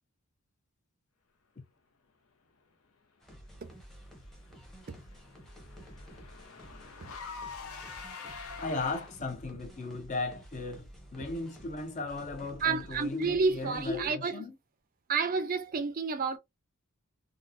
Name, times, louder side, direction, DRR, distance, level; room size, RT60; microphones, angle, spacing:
sound 1, 3.2-14.1, equal, ahead, 0.8 m, -51 dB
Car / Engine, 4.4-9.4, left 5 dB, 75° left, 0.7 m, -45 dB
voice 1, 8.6-14.6, left 3 dB, 35° left, 0.6 m, -36 dB
voice 2, 12.6-14.3 15.1-16.4, right 4 dB, 40° right, 0.4 m, -29 dB
3.7 x 2.1 x 2.5 m
head